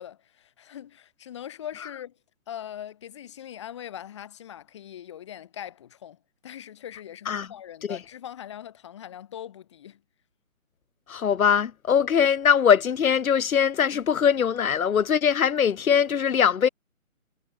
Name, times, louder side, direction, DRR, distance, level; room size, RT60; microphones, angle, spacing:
voice 1, 0.0-2.2 2.5-10.0, left 10 dB, 20° left, 4.2 m, -41 dB
voice 2, 11.1-16.7, left 7 dB, 80° left, 0.9 m, -21 dB
hypercardioid pair, 175°, 42 cm